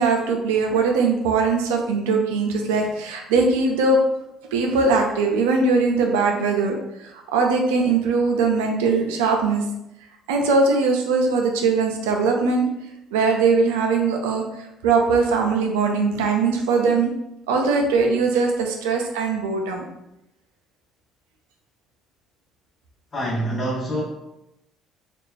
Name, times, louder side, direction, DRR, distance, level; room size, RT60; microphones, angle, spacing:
voice 1, 0.0-4.0 4.5-9.6 10.3-12.7 13.1-17.1 17.5-19.8, right 4 dB, 90° right, 2 dB, 0.5 m, -21 dB
voice 2, 23.1-24.0, right 1 dB, 40° left, -4 dB, 0.8 m, -25 dB
3.4 x 2.4 x 3.2 m, 0.87 s
supercardioid pair, 70°, 0 cm